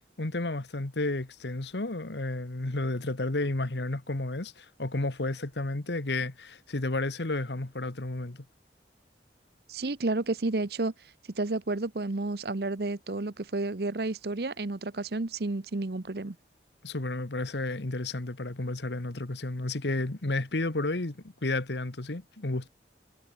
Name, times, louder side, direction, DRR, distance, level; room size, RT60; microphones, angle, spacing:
voice 1, 0.2-8.4 16.8-22.7, left 2 dB, 75° left, 1.4 m, -32 dB
voice 2, 9.7-10.9 11.3-16.4, right 2 dB, 60° right, 0.9 m, -31 dB
head